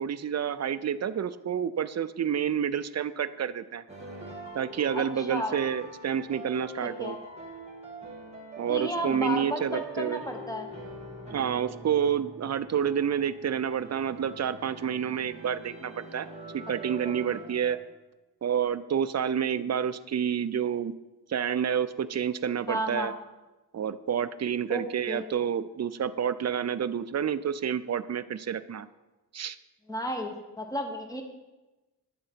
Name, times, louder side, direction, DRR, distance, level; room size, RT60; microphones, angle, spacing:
voice 1, 0.0-3.8 4.5-7.2 8.6-10.2 11.3-16.3 16.5-17.8 18.4-20.9 21.3-23.1 23.7-28.9 29.3-29.6, right 8 dB, 40° right, 13 dB, 0.5 m, -29 dB
sound 1, 3.9-17.8, right 2 dB, 15° right, 1.9 m, -44 dB
voice 2, 4.9-5.5 6.8-7.2 8.7-10.7 17.0-17.1 22.7-23.1 24.7-25.3 29.9-31.2, equal, 10° left, 4 dB, 1.2 m, -33 dB
10.0 x 3.8 x 7.4 m, 1.1 s
cardioid pair, 65°, 41 cm